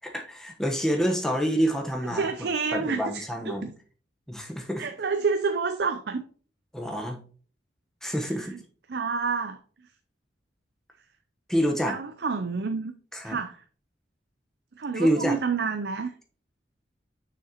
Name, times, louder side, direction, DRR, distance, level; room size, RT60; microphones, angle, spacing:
voice 1, 0.0-3.7 4.3-4.8 6.7-7.2 8.0-8.5 11.5-12.0 13.1-13.4 14.9-15.4, equal, 5° left, 1 dB, 1.0 m, -27 dB
voice 2, 2.1-3.7 4.8-6.2 8.5-8.6 8.9-9.6 11.8-12.9 13.2-13.6 14.8-16.1, right 5 dB, 60° right, 8 dB, 0.5 m, -29 dB
6.5 x 6.4 x 2.9 m, 0.43 s
head